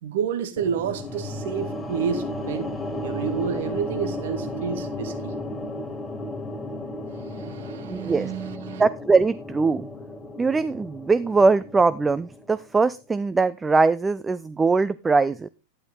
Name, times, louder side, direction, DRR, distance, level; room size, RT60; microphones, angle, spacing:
voice 1, 0.0-2.7 3.0-5.3 7.1-8.8, right 7 dB, 55° right, 1.6 m, -30 dB
sound 1, 0.6-12.8, left 1 dB, 10° left, 1.8 m, -34 dB
voice 2, 7.9-8.3 8.8-9.9 10.4-15.5, right 4 dB, 15° right, 0.5 m, -21 dB
12.0 x 10.0 x 3.7 m
figure-of-eight pair, 90°, 0 cm